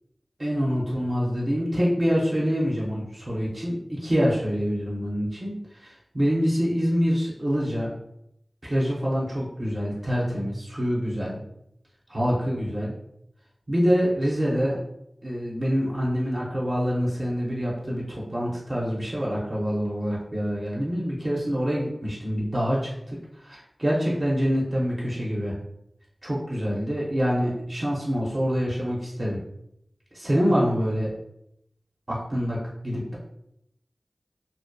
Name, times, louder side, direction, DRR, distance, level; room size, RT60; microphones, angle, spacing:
voice 1, 0.4-7.9 8.6-11.4 12.1-12.9 13.7-14.8 15.2-25.6 26.2-29.4 30.1-31.1 32.1-33.2, equal, 50° right, -5 dB, 0.6 m, -26 dB
2.6 x 2.1 x 2.2 m, 0.77 s
wide cardioid pair, 40°, 0 cm